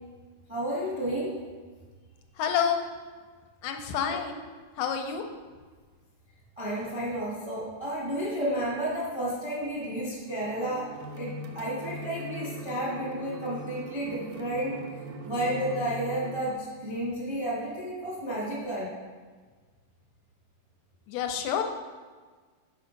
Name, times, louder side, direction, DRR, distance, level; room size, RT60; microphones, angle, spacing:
voice 1, 0.5-1.3 4.0-4.2 6.6-10.9 11.2-14.8 15.2-18.9, equal, 20° right, -7 dB, 0.9 m, -31 dB
voice 2, 2.4-2.8 3.6-4.5 4.8-5.2 21.1-21.6, left 8 dB, 80° left, 4 dB, 2.1 m, -28 dB
sound 1, 10.3-16.5, right 3 dB, 75° right, 1.9 m, -40 dB
6.5 x 4.8 x 5.2 m, 1.4 s
omnidirectional pair, 3.8 m